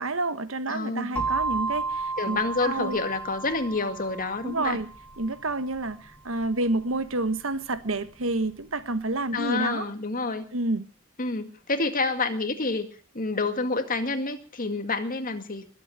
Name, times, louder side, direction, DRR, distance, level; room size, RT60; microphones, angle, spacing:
voice 1, 0.0-3.0 4.4-4.9 5.2-9.9 10.5-10.9, right 2 dB, 80° right, 1.5 m, -29 dB
voice 2, 0.7-1.2 2.2-4.8 9.3-10.4 11.2-12.9 13.1-15.7, left 3 dB, 45° left, 2.0 m, -28 dB
sound 1, 1.2-9.0, right 3 dB, 5° left, 4.2 m, -34 dB
21.5 x 8.3 x 7.4 m
head